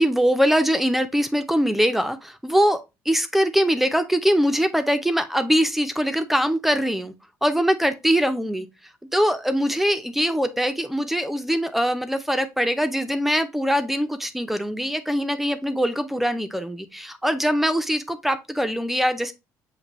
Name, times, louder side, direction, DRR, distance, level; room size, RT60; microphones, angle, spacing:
voice 1, 0.0-2.8 3.1-7.1 7.4-8.7 9.1-19.3, equal, 5° right, 0.4 m, -22 dB
6.6 x 2.6 x 2.9 m
cardioid pair, 150°, 7 cm